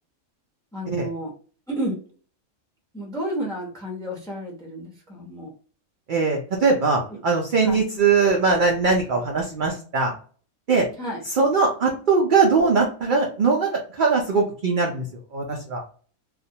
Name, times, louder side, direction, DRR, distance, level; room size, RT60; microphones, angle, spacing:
voice 1, 0.7-1.3 1.7-2.0 2.9-5.5 7.6-7.8 11.0-11.2, right 1 dB, 5° left, -1 dB, 0.4 m, -31 dB
voice 2, 6.1-10.1 10.7-10.9 11.2-15.1 15.3-15.8, right 4 dB, 75° right, 0 dB, 0.4 m, -21 dB
2.3 x 2.1 x 2.7 m, 0.41 s
omnidirectional pair, 1.4 m